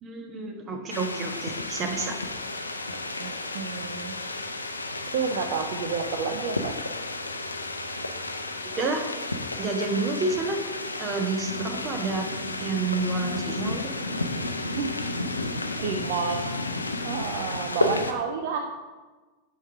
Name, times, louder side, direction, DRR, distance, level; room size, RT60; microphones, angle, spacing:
voice 1, 0.0-2.1 8.8-9.1 9.6-10.6 11.0-12.3 12.6-13.9, right 3 dB, 30° right, 4 dB, 1.3 m, -29 dB
sound 1, 0.9-18.1, left 2 dB, 80° left, 0.6 m, -32 dB
voice 2, 3.2-4.1 5.1-6.7 14.8-14.9 15.8-16.5 17.0-18.6, right 6 dB, 50° right, 4 dB, 0.6 m, -30 dB
7.2 x 5.0 x 5.8 m, 1.3 s
figure-of-eight pair, 90°, 0 cm